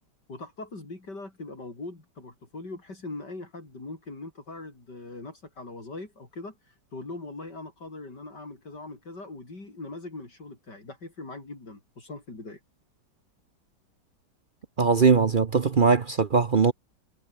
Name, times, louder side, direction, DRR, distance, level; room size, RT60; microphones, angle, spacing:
voice 1, 0.3-12.6, left 2 dB, 70° left, 6.2 m, -41 dB
voice 2, 14.8-16.7, right 5 dB, 45° right, 0.7 m, -20 dB
omnidirectional pair, 1.9 m